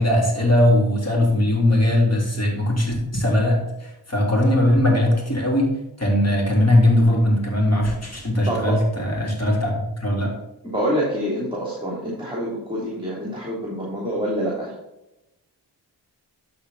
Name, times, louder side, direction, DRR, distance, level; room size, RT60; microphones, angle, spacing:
voice 1, 0.0-9.7 10.0-10.3, left 1 dB, 35° left, -2 dB, 3.5 m, -19 dB
voice 2, 8.5-8.8 9.2-9.5 10.6-14.7, equal, 10° right, -5 dB, 3.0 m, -26 dB
12.0 x 4.4 x 4.1 m, 0.90 s
cardioid pair, 50°, 44 cm